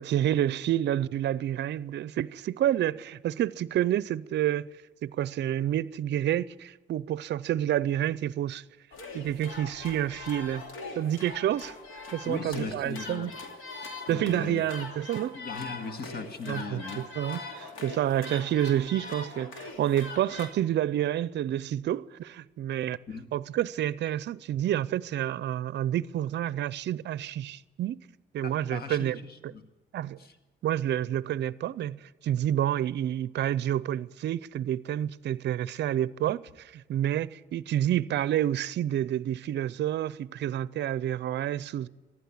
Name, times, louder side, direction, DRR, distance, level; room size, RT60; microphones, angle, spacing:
voice 1, 0.0-4.7 5.0-8.6 9.1-10.6 11.0-11.7 12.1-13.3 14.1-15.4 16.5-23.0 23.3-28.0 28.3-29.2 29.9-30.2 30.6-41.9, right 11 dB, 60° right, 0.5 m, -29 dB
sound 1, 8.9-20.5, left 3 dB, 85° left, 2.7 m, -41 dB
voice 2, 12.2-13.4 14.1-14.6 15.3-17.0 23.1-23.3 28.4-29.7 30.2-30.4, left 4 dB, 50° left, 1.8 m, -38 dB
15.0 x 11.0 x 8.5 m
cardioid pair, 90°, 20 cm